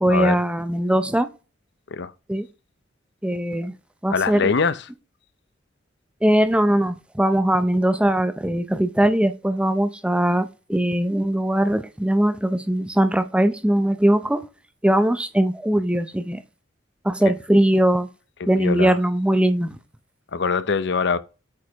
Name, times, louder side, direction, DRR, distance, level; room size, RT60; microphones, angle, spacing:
voice 1, 0.0-1.3 2.3-2.5 3.2-3.7 4.0-4.5 6.2-14.4 14.8-16.4 17.0-18.1 18.5-19.8, right 1 dB, 5° right, 0.6 m, -20 dB
voice 2, 4.1-4.8 18.4-19.0 20.3-21.2, left 5 dB, 60° left, 0.6 m, -23 dB
8.5 x 4.8 x 3.4 m
head